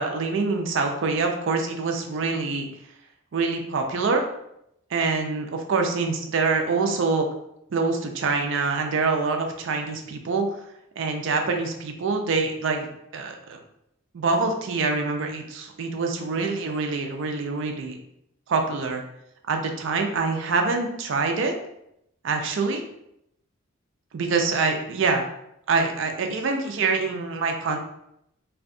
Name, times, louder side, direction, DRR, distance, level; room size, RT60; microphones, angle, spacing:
voice 1, 0.0-2.7 3.3-4.3 4.9-7.3 7.7-10.5 11.0-13.6 14.1-17.9 18.5-19.0 19.5-21.5 22.2-22.8 24.1-25.2 25.7-27.8, right 4 dB, 55° right, 4 dB, 0.4 m, -25 dB
2.6 x 2.2 x 2.5 m, 0.78 s
head